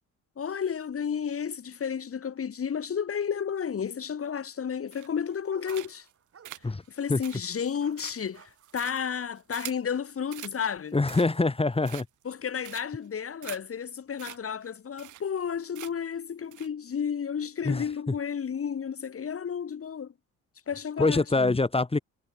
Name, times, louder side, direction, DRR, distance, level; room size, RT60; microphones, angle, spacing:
voice 1, 0.4-6.1 6.9-11.0 12.2-20.1 20.7-21.6, left 7 dB, 50° left, 5.0 m, -32 dB
sound 1, 4.9-5.3 5.7-6.1 6.4-9.9 10.3-10.6 10.9-11.5 11.8-12.3 12.6-13.1 13.4-13.6 13.9-14.0 14.2-14.4 14.6-14.7 15.0-15.5 15.7-16.1 16.5-16.7, right 14 dB, 80° right, 2.1 m, -44 dB
sound 2, 5.0-9.5 9.9-10.1, right 7 dB, 50° right, 7.0 m, -56 dB
voice 2, 10.9-12.1 17.6-17.8 21.0-22.0, left 3 dB, 20° left, 3.0 m, -24 dB
cardioid pair, 90°, 30 cm